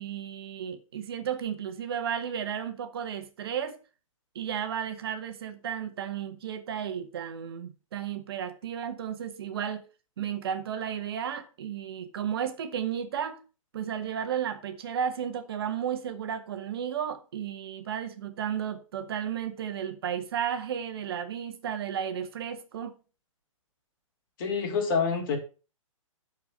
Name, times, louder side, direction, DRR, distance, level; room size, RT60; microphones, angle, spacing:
voice 1, 0.0-3.8 4.3-9.9 10.2-13.4 13.7-22.9, right 8 dB, 45° right, 1.4 m, -33 dB
voice 2, 24.4-25.4, left 5 dB, 40° left, 2.9 m, -27 dB
12.0 x 4.7 x 6.3 m
figure-of-eight pair, 120°, 17 cm